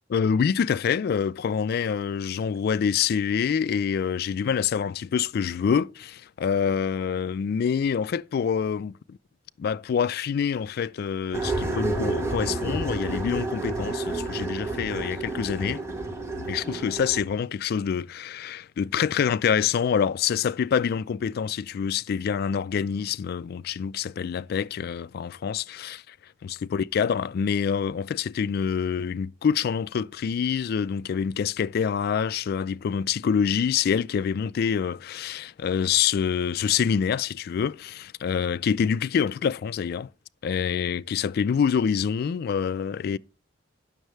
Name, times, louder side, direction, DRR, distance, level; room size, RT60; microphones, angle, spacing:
voice 1, 0.1-9.2 9.6-15.8 16.5-26.0 26.7-40.1 40.4-43.2, left 7 dB, 55° left, 0.3 m, -26 dB
sound 1, 11.3-17.2, right 2 dB, 15° right, 1.1 m, -30 dB
9.1 x 6.4 x 3.2 m
head